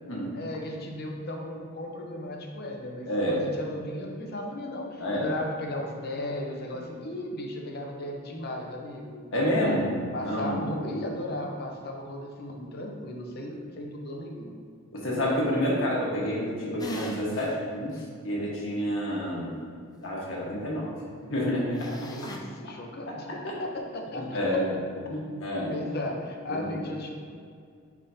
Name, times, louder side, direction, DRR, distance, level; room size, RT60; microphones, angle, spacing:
voice 1, 0.3-9.3 10.1-14.6 22.1-24.4 25.7-27.1, left 1 dB, 50° left, 1 dB, 0.8 m, -36 dB
voice 2, 3.1-3.6 5.0-5.3 9.3-10.6 14.9-18.0 18.2-19.5 20.0-20.9 21.2-21.8 24.3-24.8 25.1-25.7 26.5-26.8, equal, 75° left, -5 dB, 1.4 m, -28 dB
sound 1, 16.8-17.5 18.0-18.1 21.8-22.4, equal, 20° left, 0.5 m, -39 dB
10.5 x 3.7 x 2.7 m, 2.3 s
head